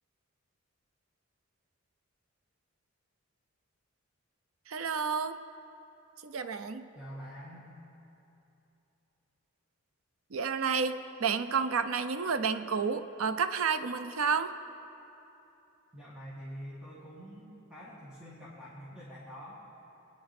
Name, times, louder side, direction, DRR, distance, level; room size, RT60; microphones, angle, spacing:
voice 1, 4.7-5.4 6.2-6.8 10.3-14.5, right 5 dB, 85° right, 11 dB, 0.6 m, -30 dB
voice 2, 7.0-7.7 15.9-19.6, equal, 5° right, -7 dB, 1.8 m, -46 dB
24.0 x 9.8 x 4.3 m, 2.9 s
head